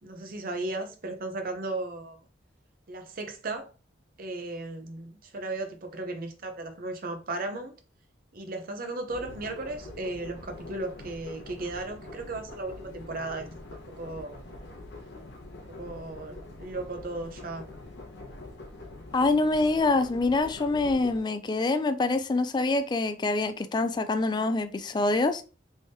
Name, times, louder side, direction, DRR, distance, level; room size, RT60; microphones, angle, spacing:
voice 1, 0.0-2.2 2.9-3.7 4.2-7.7 8.3-13.5 13.9-14.3 15.7-17.6, right 2 dB, 50° right, 0.7 m, -36 dB
sound 1, 9.1-21.2, left 2 dB, 65° left, 0.9 m, -44 dB
voice 2, 19.1-25.4, left 3 dB, 25° left, 0.3 m, -25 dB
3.5 x 3.4 x 2.7 m
head